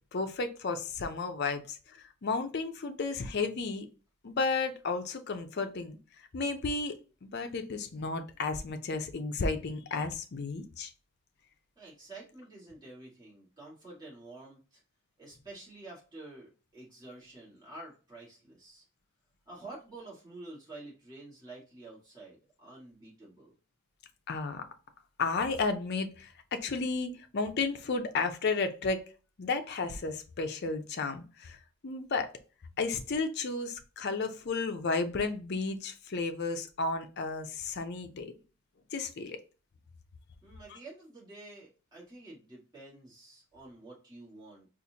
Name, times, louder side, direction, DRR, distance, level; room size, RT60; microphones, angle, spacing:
voice 1, 0.1-3.9 4.2-6.0 6.3-7.0 7.2-10.9 24.3-24.6 25.2-29.0 29.4-31.6 31.8-32.3 32.8-38.3 38.9-39.4, left 4 dB, 50° left, 0.5 m, -33 dB
voice 2, 11.7-14.8 15.2-18.8 19.4-23.5 40.4-44.7, right 2 dB, 20° right, 1.7 m, -49 dB
4.0 x 2.5 x 2.8 m
head